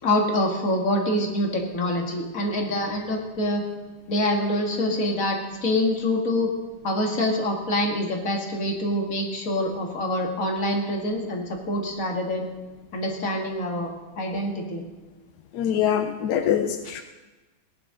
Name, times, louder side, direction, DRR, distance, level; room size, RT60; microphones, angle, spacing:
voice 1, 0.0-3.6 4.1-6.5 6.8-12.5 12.9-13.9 14.2-14.8, left 1 dB, 40° left, 1 dB, 2.0 m, -25 dB
voice 2, 15.5-17.0, left 9 dB, 70° left, 7 dB, 1.0 m, -24 dB
17.5 x 11.0 x 3.7 m, 1.1 s
omnidirectional pair, 2.4 m